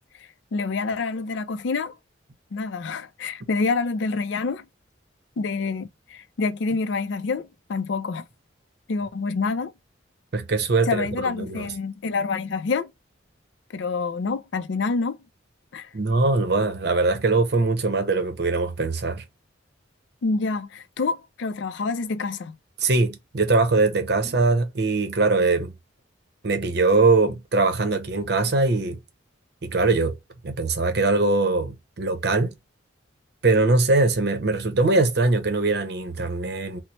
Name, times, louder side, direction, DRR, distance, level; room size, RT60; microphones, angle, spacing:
voice 1, 0.5-1.9 2.5-4.6 5.4-8.3 8.9-9.7 10.9-12.9 13.7-15.2 15.7-15.9 20.2-22.6, left 4 dB, 70° left, 0.4 m, -27 dB
voice 2, 10.3-11.7 15.9-19.2 22.8-25.7 26.4-29.0 29.6-30.2 30.4-32.5 33.4-36.8, right 3 dB, 55° right, 0.7 m, -22 dB
3.0 x 2.0 x 4.1 m
head